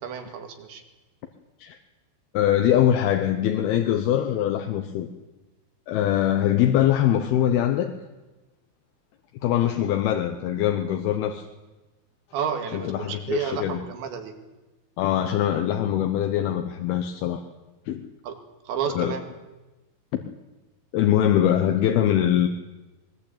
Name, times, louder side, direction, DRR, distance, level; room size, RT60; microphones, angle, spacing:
voice 1, 0.0-0.8 12.3-14.3 18.2-18.4 18.7-19.3, right 7 dB, 75° right, 5 dB, 4.4 m, -31 dB
voice 2, 2.3-5.1 5.9-7.9 9.4-11.5 12.7-13.8 15.0-17.4 17.9-18.1 18.9-19.2 20.1-20.2 20.9-22.5, left 11 dB, 70° left, 5 dB, 2.6 m, -22 dB
21.0 x 21.0 x 8.7 m, 1.1 s
omnidirectional pair, 5.2 m